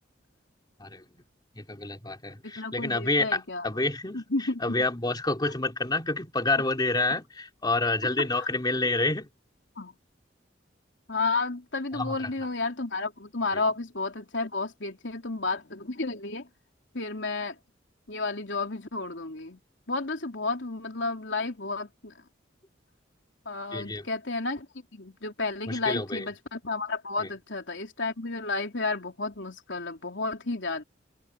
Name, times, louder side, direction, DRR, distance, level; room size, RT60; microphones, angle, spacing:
voice 1, 1.5-9.3 11.9-12.3 13.5-13.6 23.7-24.1 25.7-26.3 27.2-27.3, left 2 dB, 20° left, 3.0 m, -28 dB
voice 2, 2.4-3.7 4.1-4.8 8.4-8.5 9.8-9.9 11.1-16.5 16.9-17.6 18.1-19.6 19.9-22.1 23.5-24.7 24.9-30.8, left 3 dB, 70° left, 3.5 m, -32 dB
head